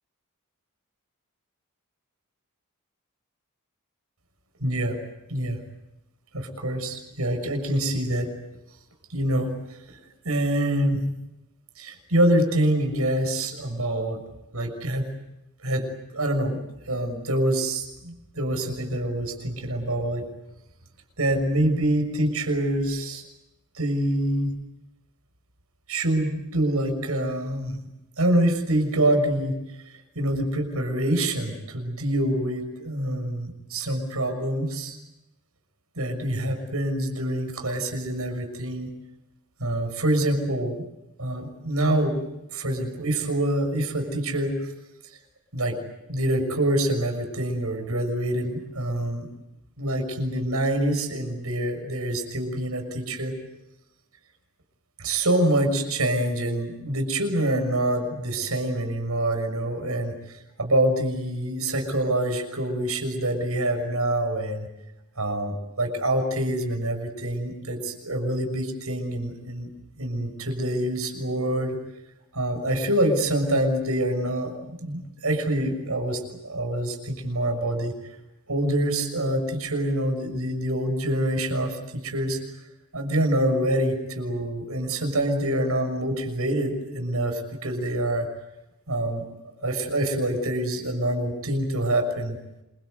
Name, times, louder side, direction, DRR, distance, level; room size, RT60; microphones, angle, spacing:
voice 1, 4.6-5.0 5.3-5.6 6.3-8.3 9.1-11.0 11.8-14.2 14.5-15.1 15.6-15.9 16.1-16.6 16.8-20.3 21.2-23.2 23.7-24.5 25.9-27.9 28.2-35.0 35.9-38.9 39.6-40.9 41.2-42.2 42.5-44.7 45.5-45.8 46.1-49.3 49.8-53.3 55.0-64.7 65.2-69.7 70.0-71.8 72.3-77.9 78.5-82.4 82.9-88.3 88.9-89.2 89.6-92.4, right 1 dB, 80° right, 5 dB, 6.5 m, -26 dB
28.0 x 24.0 x 8.2 m, 0.93 s
head